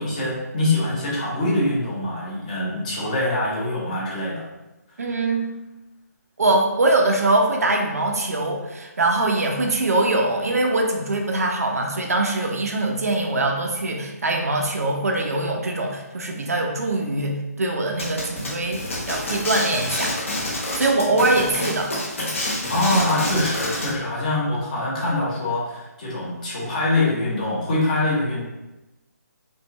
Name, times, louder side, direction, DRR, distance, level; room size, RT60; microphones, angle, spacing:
voice 1, 0.0-4.4 22.7-28.4, left 2 dB, 25° left, -6 dB, 1.0 m, -24 dB
voice 2, 5.0-5.4 6.4-20.1 20.8-21.9, right 2 dB, 60° right, 1 dB, 0.7 m, -22 dB
sound 1, 18.0-23.9, left 1 dB, 45° left, 1.1 m, -28 dB
5.4 x 2.5 x 3.0 m, 1.0 s
hypercardioid pair, 175°, 9 cm